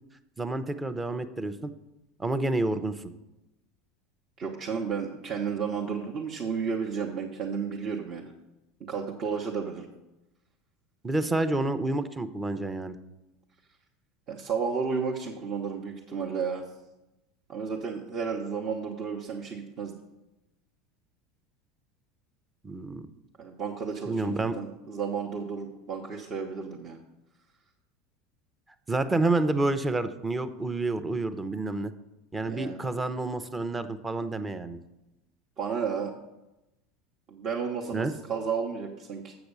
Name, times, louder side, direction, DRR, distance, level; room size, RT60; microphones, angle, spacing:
voice 1, 0.4-1.7 2.2-3.1 11.0-13.0 22.6-23.1 24.1-24.6 28.9-31.9 32.3-34.8 37.9-38.1, right 2 dB, 15° right, 11 dB, 0.6 m, -29 dB
voice 2, 4.4-8.3 8.9-9.9 14.3-16.6 17.5-20.0 23.4-27.0 32.5-32.8 35.6-36.1 37.3-39.4, right 6 dB, 40° right, 0 dB, 1.0 m, -32 dB
8.0 x 6.0 x 6.7 m, 0.96 s
supercardioid pair, 130°, 0 cm